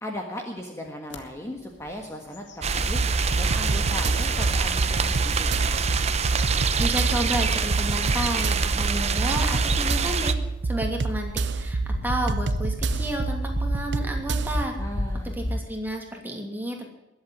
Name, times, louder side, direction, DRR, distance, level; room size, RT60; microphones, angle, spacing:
voice 1, 0.0-5.5 14.8-15.4, left 1 dB, 15° left, 1 dB, 1.6 m, -37 dB
sound 1, 1.1-1.2 1.7-2.0 2.3-3.8 4.4-4.5 6.2-15.6, left 1 dB, 70° left, 2.0 m, -33 dB
sound 2, 2.6-10.3, right 4 dB, 35° right, 0.8 m, -25 dB
sound 3, 3.0-14.7, right 3 dB, 65° right, 0.6 m, -28 dB
voice 2, 6.8-10.3 10.6-14.7 15.2-16.9, right 1 dB, 10° right, 1 dB, 2.8 m, -31 dB
21.5 x 8.1 x 7.6 m, 0.99 s
head